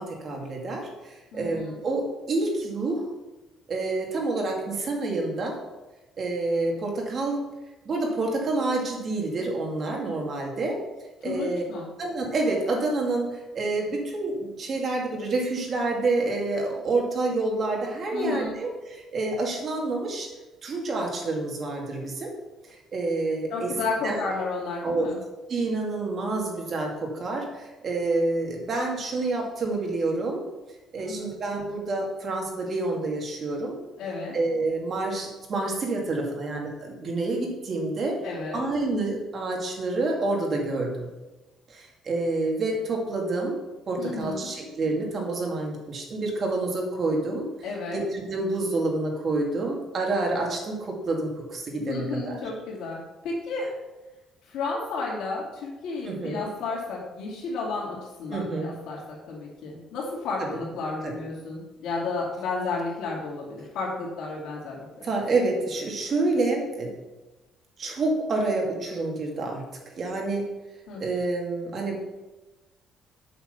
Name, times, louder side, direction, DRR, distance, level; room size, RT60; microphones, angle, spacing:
voice 1, 0.0-3.1 3.7-5.6 6.2-7.4 7.9-10.8 11.2-11.6 12.0-20.3 20.6-22.3 22.6-23.7 24.0-24.3 24.8-25.1 25.5-30.4 30.9-33.7 34.3-38.2 38.5-41.1 41.7-43.6 43.9-47.5 47.9-52.4 56.0-56.5 58.3-58.7 60.4-60.5 61.0-61.1 65.0-66.9 67.8-69.6 70.0-70.5 71.0-72.0, right 2 dB, 40° right, 0 dB, 2.3 m, -28 dB
voice 2, 1.3-1.8 11.2-11.9 18.1-18.6 23.5-25.2 31.0-31.3 34.0-34.4 38.2-38.7 44.0-44.5 47.6-48.0 51.8-53.7 54.5-65.1 70.9-71.0, left 3 dB, 85° left, -4 dB, 2.7 m, -32 dB
8.0 x 6.0 x 6.8 m, 1.1 s
cardioid pair, 160°, 0 cm